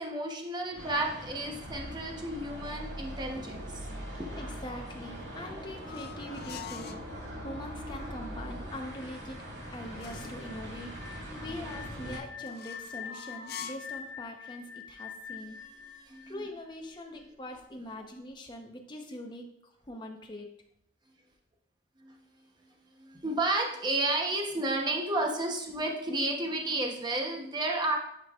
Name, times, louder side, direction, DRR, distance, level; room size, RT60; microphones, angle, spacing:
voice 1, 0.0-3.8 4.2-4.4 15.9-16.4 22.0-22.1 23.0-27.9, right 2 dB, 25° right, 1 dB, 0.9 m, -32 dB
sound 1, 0.7-12.2, equal, 75° right, 2.3 m, -41 dB
voice 2, 4.3-9.4 9.7-15.6 16.3-20.5, left 1 dB, 25° left, 2 dB, 0.9 m, -43 dB
sound 2, 4.9-7.1 9.1-10.5 12.4-14.0, left 8 dB, 55° left, 0.4 m, -46 dB
sound 3, 10.1-17.0, left 7 dB, ahead, 1.7 m, -45 dB
9.7 x 5.4 x 2.4 m, 0.77 s
head